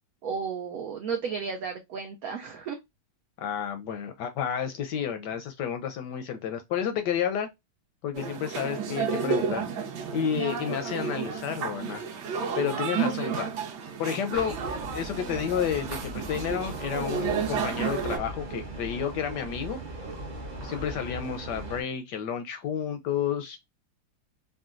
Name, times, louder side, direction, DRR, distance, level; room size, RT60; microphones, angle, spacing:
voice 1, 0.2-2.8 20.6-21.0, right 6 dB, 90° right, 0.8 m, -34 dB
voice 2, 3.4-7.5 8.0-9.7 10.1-12.0 12.6-13.5 14.0-14.6 14.9-19.8 20.6-23.6, left 8 dB, 75° left, 1.0 m, -31 dB
sound 1, 8.1-18.2, right 6 dB, 65° right, 1.3 m, -31 dB
sound 2, 14.3-21.8, right 2 dB, 45° right, 0.6 m, -39 dB
3.8 x 2.2 x 2.4 m
omnidirectional pair, 2.2 m